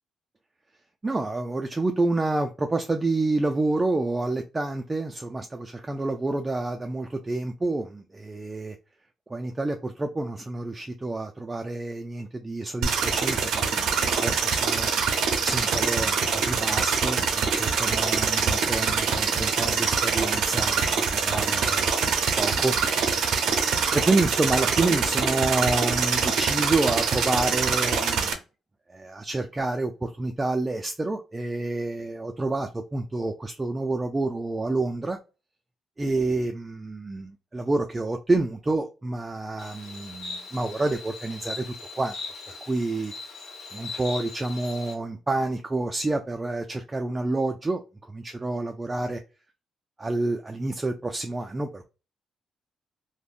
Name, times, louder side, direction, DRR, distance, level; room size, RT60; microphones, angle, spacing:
voice 1, 1.0-8.8 9.3-14.9 15.4-21.9 22.4-23.3 23.9-28.4 28.9-35.2 36.0-42.2 42.5-43.1 43.7-49.2 50.0-51.9, right 2 dB, 20° right, 0.3 m, -28 dB
sound 1, 12.8-28.3, right 6 dB, 80° right, 0.5 m, -24 dB
Insect, 39.6-45.0, left 4 dB, 65° left, 0.9 m, -39 dB
3.4 x 2.1 x 2.4 m
cardioid pair, 90°, 0 cm